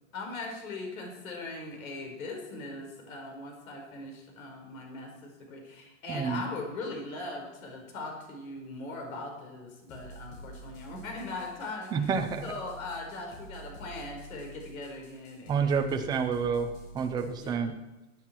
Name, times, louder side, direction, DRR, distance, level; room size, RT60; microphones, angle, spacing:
voice 1, 0.1-12.1 12.4-15.9 17.4-17.7, left 2 dB, 85° left, 2 dB, 4.8 m, -40 dB
voice 2, 6.1-6.5 11.9-12.5 15.5-17.7, right 6 dB, 10° right, 5 dB, 0.6 m, -29 dB
sound 1, 9.9-17.6, right 2 dB, 35° left, 2.3 m, -48 dB
16.5 x 9.5 x 4.5 m, 1.1 s
supercardioid pair, 160°, 40 cm